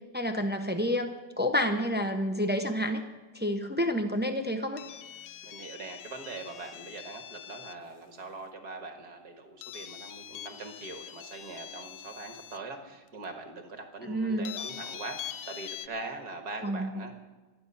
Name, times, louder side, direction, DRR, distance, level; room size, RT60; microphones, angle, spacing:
voice 1, 0.1-3.0 3.3-4.8 14.0-14.5 16.6-17.0, equal, 15° right, 6 dB, 0.4 m, -29 dB
sound 1, 4.8-7.9 9.6-12.6 13.2-13.3 14.4-15.9, left 10 dB, 85° left, 1.3 m, -43 dB
voice 2, 5.4-17.2, right 3 dB, 65° right, 5 dB, 2.1 m, -42 dB
24.5 x 9.5 x 5.6 m, 1.2 s
omnidirectional pair, 1.9 m